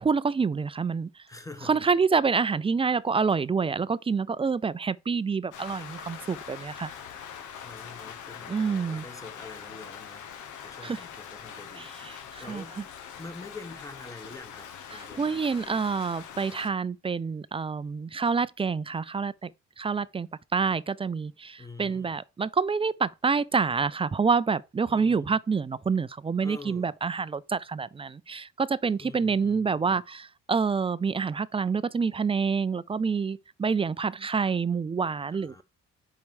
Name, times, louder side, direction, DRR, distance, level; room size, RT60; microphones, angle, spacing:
voice 1, 0.0-1.2 1.7-6.9 8.5-9.0 10.8-11.0 11.8-12.6 14.9-19.5 19.8-35.6, right 5 dB, 20° right, 0.3 m, -27 dB
voice 2, 1.3-1.8 7.6-10.3 10.6-12.9 13.2-15.9 21.6-22.2 24.9-25.4 26.4-26.9 29.0-29.9 35.3-35.6, left 3 dB, 10° left, 1.4 m, -46 dB
Rain, 5.5-16.7, left 8 dB, 80° left, 1.3 m, -43 dB
5.2 x 4.6 x 4.8 m
cardioid pair, 90°, 30 cm